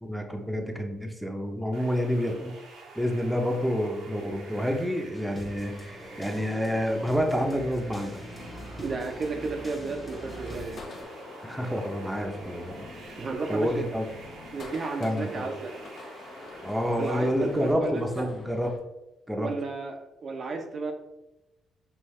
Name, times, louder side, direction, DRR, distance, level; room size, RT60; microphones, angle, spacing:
voice 1, 0.0-2.6 3.0-8.2 11.5-12.7 13.5-14.1 15.0-15.5 16.6-18.7 19.3-19.5, equal, 5° right, 2 dB, 0.7 m, -28 dB
sound 1, 1.7-17.7, right 3 dB, 80° right, 1.1 m, -48 dB
sound 2, 5.1-11.0, equal, 25° left, 1.0 m, -44 dB
sound 3, 8.3-18.8, left 2 dB, 55° left, 0.9 m, -45 dB
voice 2, 8.8-10.8 13.2-13.8 14.5-15.7 17.0-18.3 19.4-20.9, right 4 dB, 50° right, 3 dB, 0.6 m, -33 dB
5.5 x 2.7 x 3.2 m, 0.98 s
supercardioid pair, 70°, 0 cm